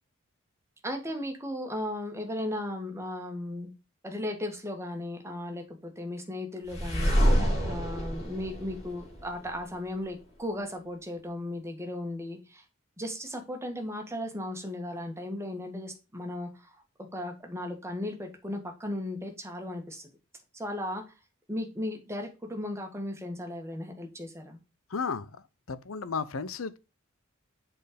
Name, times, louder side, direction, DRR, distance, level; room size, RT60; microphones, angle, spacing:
voice 1, 0.8-3.7 4.0-12.6 13.0-16.8 17.1-20.1 20.5-21.0 21.5-24.6, left 1 dB, 15° right, 1.8 m, -36 dB
sound 1, 6.7-9.6, equal, 35° left, 4.7 m, -27 dB
voice 2, 24.9-25.3 25.7-26.8, left 5 dB, 90° left, 0.7 m, -33 dB
7.7 x 4.4 x 5.2 m
head